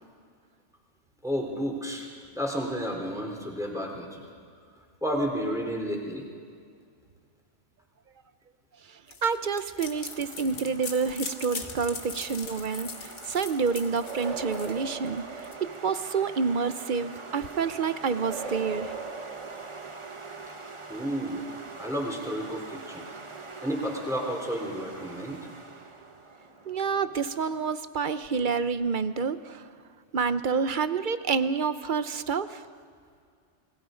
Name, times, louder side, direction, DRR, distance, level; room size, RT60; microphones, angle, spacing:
voice 1, 1.2-2.1 2.3-4.3 5.0-6.2 20.9-21.4 21.8-23.0 23.6-25.4, equal, 5° right, 0 dB, 3.3 m, -31 dB
voice 2, 8.9-15.2 15.6-18.9 26.7-29.7 30.1-32.6, right 5 dB, 50° right, 13 dB, 0.8 m, -28 dB
sound 1, 9.1-15.5, left 5 dB, 80° left, 1.7 m, -41 dB
sound 2, 9.9-27.7, right 3 dB, 25° right, 1.1 m, -44 dB
sound 3, 14.0-16.1 18.2-20.2, right 4 dB, 90° right, 2.1 m, -39 dB
28.0 x 21.0 x 5.1 m, 2.2 s
omnidirectional pair, 1.2 m